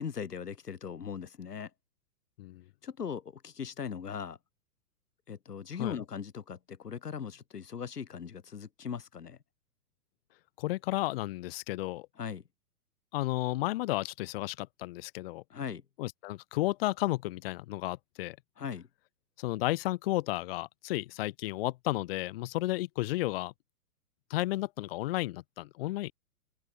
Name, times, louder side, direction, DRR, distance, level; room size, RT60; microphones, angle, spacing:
voice 1, 0.0-1.7 2.8-4.4 5.3-9.4 12.2-12.4 15.5-15.8 18.6-18.9, left 7 dB, 80° left, 1.4 m, -39 dB
voice 2, 10.6-12.1 13.1-15.4 16.0-18.4 19.4-23.5 24.3-26.1, left 18 dB, 40° left, 0.9 m, -33 dB
open air
figure-of-eight pair, 115°, 47 cm